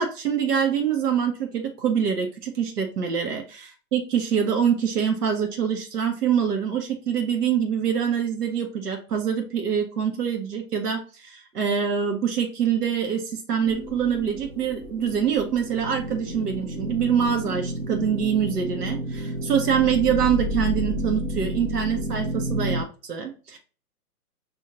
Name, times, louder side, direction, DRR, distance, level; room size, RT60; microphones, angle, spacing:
voice 1, 0.0-23.6, right 7 dB, 75° right, 3 dB, 1.2 m, -25 dB
sound 1, 13.6-22.8, equal, 30° right, 0.8 m, -30 dB
5.3 x 2.7 x 2.8 m, 0.36 s
hypercardioid pair, 155°, 47 cm